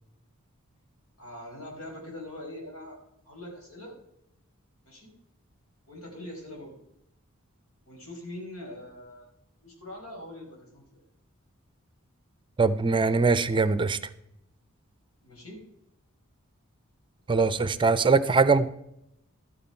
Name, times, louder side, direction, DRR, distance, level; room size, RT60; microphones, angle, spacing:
voice 1, 1.2-3.0 3.2-4.0 4.8-5.1 5.9-6.7 7.9-9.3 9.6-11.0 15.2-15.6 18.0-18.2, left 1 dB, 85° left, 0 dB, 4.6 m, -42 dB
voice 2, 12.6-14.0 17.3-18.7, right 4 dB, 25° right, 14 dB, 0.5 m, -22 dB
12.5 x 9.2 x 4.4 m, 0.79 s
head